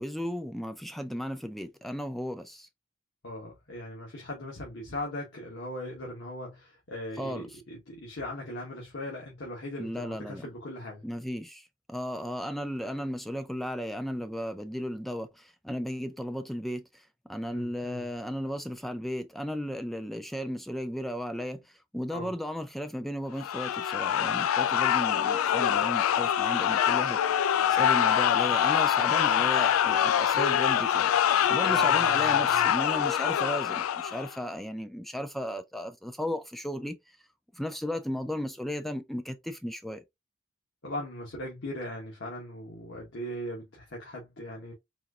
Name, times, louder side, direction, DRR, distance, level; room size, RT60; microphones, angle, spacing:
voice 1, 0.0-2.7 7.2-7.5 9.8-10.4 11.0-16.8 17.3-21.6 21.9-27.2 27.7-31.1 31.5-37.0 37.5-40.0, equal, ahead, 0.3 m, -35 dB
voice 2, 3.2-11.0 17.5-18.0 22.1-22.3 31.6-32.7 40.8-44.7, left 1 dB, 60° left, 1.2 m, -39 dB
sound 1, 23.4-34.3, left 9 dB, 90° left, 0.3 m, -25 dB
4.1 x 2.5 x 2.3 m
head